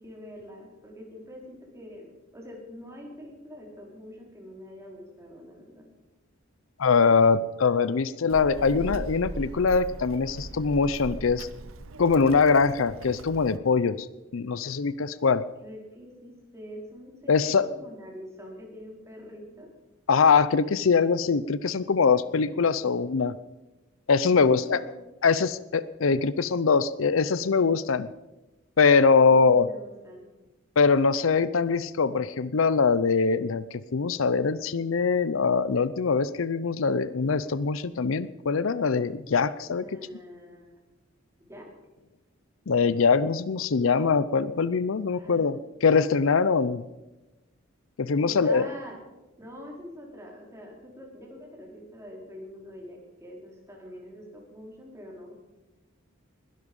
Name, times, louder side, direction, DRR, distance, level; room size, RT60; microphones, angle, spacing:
voice 1, 0.0-5.9 15.6-19.7 22.8-23.0 24.3-24.9 29.2-30.2 39.8-40.8 41.5-41.7 45.1-45.5 48.2-49.0 49.4-55.3, equal, 15° right, -1 dB, 4.3 m, -45 dB
voice 2, 6.8-11.5 12.0-14.1 14.3-15.4 17.3-17.7 20.1-23.3 24.1-24.8 25.2-28.1 28.8-29.7 30.8-39.8 42.7-46.8 48.0-48.7, left 5 dB, 70° left, 16 dB, 0.6 m, -23 dB
Child speech kid speaking, 8.3-13.6, right 2 dB, 80° right, 0.9 m, -39 dB
21.0 x 12.0 x 5.4 m, 1.1 s
head